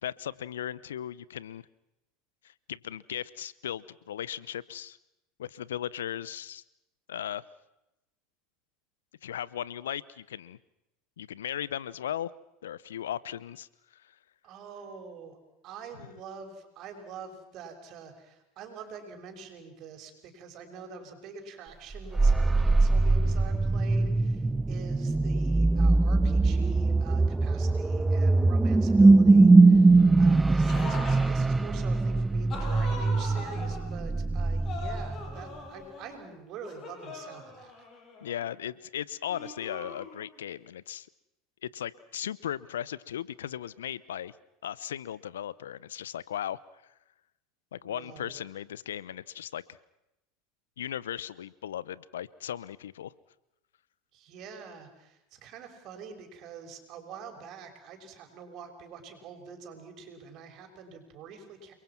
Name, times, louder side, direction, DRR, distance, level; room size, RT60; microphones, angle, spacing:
voice 1, 0.0-1.6 2.4-5.0 5.4-6.6 7.1-7.4 9.2-10.6 11.2-12.3 12.6-13.7 13.9-14.1 38.2-41.1 41.6-44.3 44.6-46.6 47.7-49.8 50.8-53.1, left 10 dB, 80° left, 21 dB, 0.8 m, -37 dB
voice 2, 14.4-15.4 15.6-37.9 47.8-48.4 54.1-61.7, right 5 dB, 50° right, 5 dB, 6.3 m, -46 dB
sound 1, 21.9-35.4, right 3 dB, 15° right, 0.8 m, -22 dB
sound 2, 30.7-31.3 32.5-33.9 34.7-36.2 36.6-38.4 39.3-40.4, left 3 dB, 40° left, 8.0 m, -41 dB
30.0 x 22.5 x 6.0 m, 0.89 s
hypercardioid pair, 85°, 0 cm